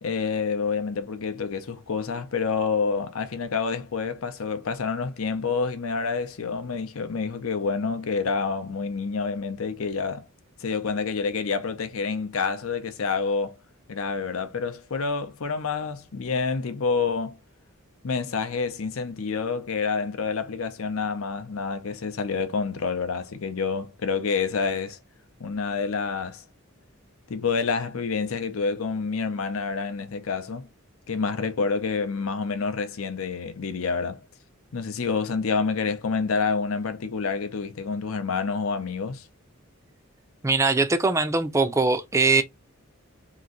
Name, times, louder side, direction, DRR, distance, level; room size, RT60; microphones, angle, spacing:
voice 1, 0.0-10.3 10.6-13.6 13.9-17.4 18.0-25.0 25.4-26.4 27.3-30.7 31.1-34.2 34.7-39.3, left 5 dB, 75° left, 0.6 m, -28 dB
voice 2, 40.4-42.4, right 3 dB, 15° right, 0.5 m, -21 dB
3.0 x 2.6 x 3.7 m
head